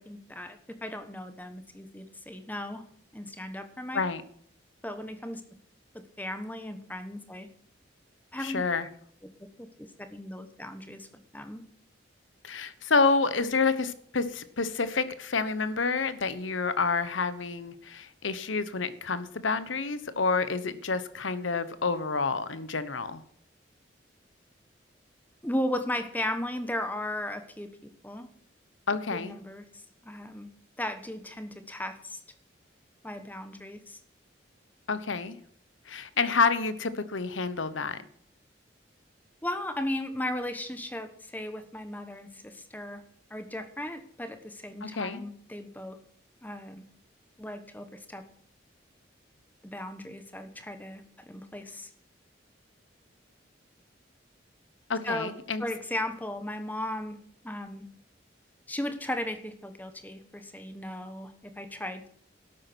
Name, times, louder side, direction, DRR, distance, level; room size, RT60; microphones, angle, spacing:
voice 1, 0.0-2.8 3.1-4.0 4.8-5.4 5.9-7.5 8.3-8.6 9.6-11.1 11.3-11.6 25.4-27.7 28.0-28.3 29.1-29.6 30.0-30.5 30.8-32.2 33.0-34.0 39.4-43.0 43.3-46.0 46.4-46.8 47.4-48.2 49.6-51.9 55.0-55.3 55.6-57.2 57.4-57.9 58.7-62.1, left 1 dB, 10° left, 8 dB, 1.2 m, -36 dB
voice 2, 8.4-8.9 12.4-23.2 28.9-29.3 34.9-35.4 35.9-38.0 44.8-45.2 54.9-55.6, left 4 dB, 85° left, 14 dB, 1.1 m, -28 dB
12.0 x 8.7 x 6.2 m, 0.66 s
head